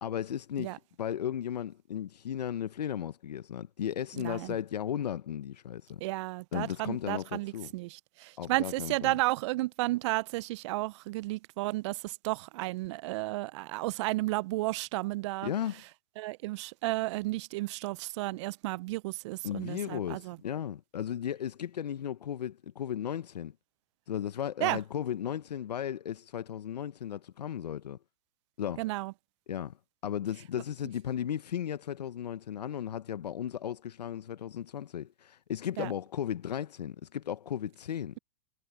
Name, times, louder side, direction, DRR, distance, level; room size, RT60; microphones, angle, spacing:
voice 1, 0.0-6.0 6.5-7.7 8.4-9.2 15.4-15.8 19.4-23.5 24.1-28.0 28.6-28.9 29.5-29.8 30.0-38.1, left 9 dB, 80° left, 0.9 m, -35 dB
voice 2, 4.2-4.5 6.0-15.5 16.2-20.4 24.6-24.8 28.8-29.1 35.8-35.9, right 20 dB, 45° right, 0.4 m, -33 dB
hypercardioid pair, 125°, 21 cm